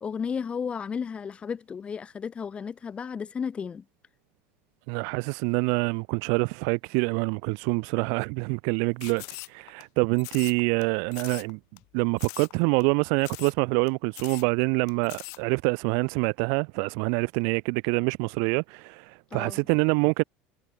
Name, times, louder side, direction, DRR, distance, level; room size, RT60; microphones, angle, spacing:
voice 1, 0.0-3.8 19.3-19.6, left 6 dB, 20° left, 3.7 m, -33 dB
voice 2, 4.9-11.6 11.9-20.2, right 40 dB or more, 70° right, 0.7 m, -26 dB
sound 1, 9.0-9.8 10.2-10.8 11.1-11.5 11.8-11.9 12.2-12.5 12.8-12.9 13.2-13.6 13.9-14.0 14.1-14.5 14.9-15.4, left 29 dB, 65° left, 5.1 m, -41 dB
cardioid pair, 150°, 5 cm